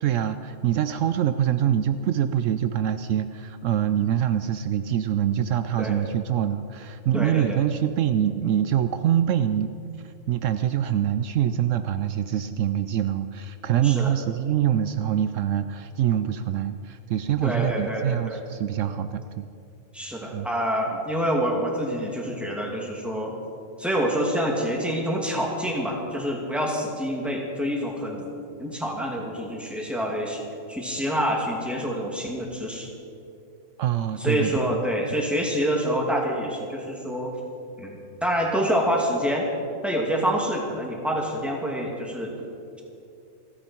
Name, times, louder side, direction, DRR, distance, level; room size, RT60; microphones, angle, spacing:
voice 1, 0.0-9.7 10.0-19.5 20.3-20.5 33.8-34.8 35.1-35.2, right 10 dB, 75° right, 11 dB, 0.9 m, -25 dB
voice 2, 7.1-7.6 13.8-14.1 17.4-18.4 19.9-23.3 23.8-28.3 28.6-30.4 30.7-32.9 34.2-37.3 37.8-39.5 39.8-42.3, equal, ahead, -2 dB, 2.4 m, -27 dB
28.5 x 10.0 x 4.5 m, 2.7 s
omnidirectional pair, 1.4 m